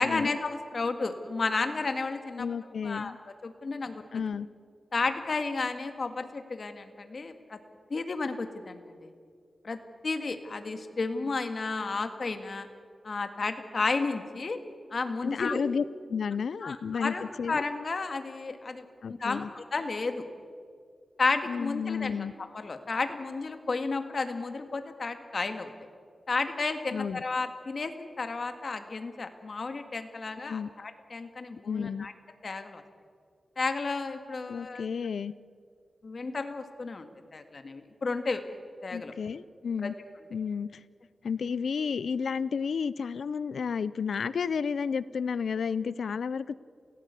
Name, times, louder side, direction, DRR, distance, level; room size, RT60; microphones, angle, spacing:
voice 1, 0.0-2.5 2.8-3.1 3.4-4.0 4.9-7.6 7.9-9.1 9.6-12.7 13.0-14.6 14.9-15.6 16.6-20.3 21.2-25.7 26.3-32.1 32.4-32.8 33.6-34.9 36.0-38.4 38.8-39.1 39.8-39.9, left 3 dB, 55° left, 7 dB, 1.9 m, -32 dB
voice 2, 2.4-3.2 4.1-4.5 15.2-15.8 16.1-17.6 19.0-19.5 21.5-22.3 26.9-27.2 30.5-30.7 31.6-32.1 34.5-35.3 38.9-39.9 40.3-40.8 41.2-46.6, left 6 dB, 85° left, 18 dB, 0.5 m, -32 dB
28.0 x 16.5 x 8.3 m, 2.2 s
wide cardioid pair, 85°, 0 cm